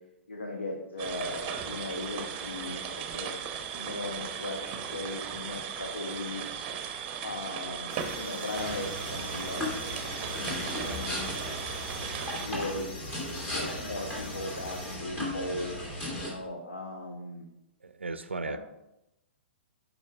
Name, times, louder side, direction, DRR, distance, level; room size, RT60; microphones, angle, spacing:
voice 1, 0.3-3.3 3.7-6.7 7.2-11.3 12.0-13.0 13.5-15.8 16.1-17.4 18.4-18.6, left 2 dB, 75° left, 2 dB, 0.8 m, -38 dB
sound 1, 1.0-12.5, right 7 dB, 30° right, 0.7 m, -37 dB
sound 2, 7.9-15.0, left 2 dB, 40° left, 1.4 m, -46 dB
sound 3, 8.6-16.3, left 1 dB, 25° left, 2.4 m, -36 dB
voice 2, 17.8-18.6, right 3 dB, 80° right, 12 dB, 0.4 m, -36 dB
10.5 x 5.2 x 2.3 m, 0.88 s
figure-of-eight pair, 110°, 6 cm